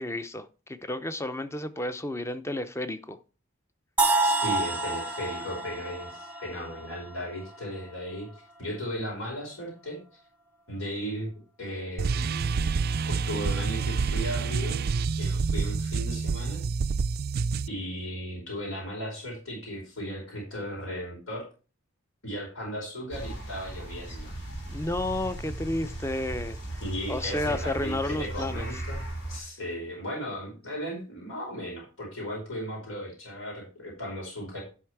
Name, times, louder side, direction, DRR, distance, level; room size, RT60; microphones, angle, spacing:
voice 1, 0.0-3.2 24.7-26.8 27.1-28.6, left 1 dB, 15° left, 0.6 m, -32 dB
sound 1, 4.0-7.9, right 3 dB, 10° right, 0.9 m, -28 dB
voice 2, 4.2-10.0 10.7-11.3 11.6-14.8 15.2-16.6 17.7-21.4 22.2-24.3 26.8-29.0 29.3-34.6, equal, 80° left, 4.8 m, -36 dB
sound 2, 12.0-17.7, right 4 dB, 50° right, 0.3 m, -28 dB
sound 3, 23.1-29.4, right 1 dB, 55° left, 3.1 m, -37 dB
11.0 x 5.5 x 4.6 m
head